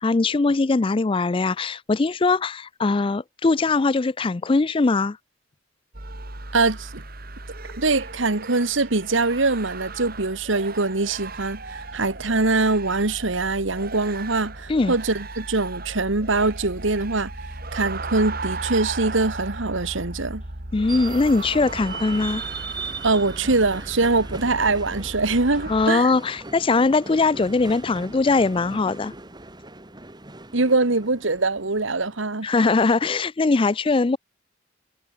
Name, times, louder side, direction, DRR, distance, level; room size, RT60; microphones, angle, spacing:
voice 1, 0.0-5.2 14.7-14.9 20.7-22.4 25.7-29.1 32.4-34.2, left 3 dB, 25° left, 0.4 m, -21 dB
sound 1, 5.9-25.9, right 3 dB, 45° right, 3.3 m, -36 dB
voice 2, 6.5-7.0 7.8-17.3 17.7-20.4 23.0-26.1 30.5-32.5, right 3 dB, 70° right, 1.6 m, -23 dB
sound 2, 20.9-32.5, right 3 dB, 20° right, 2.0 m, -39 dB
head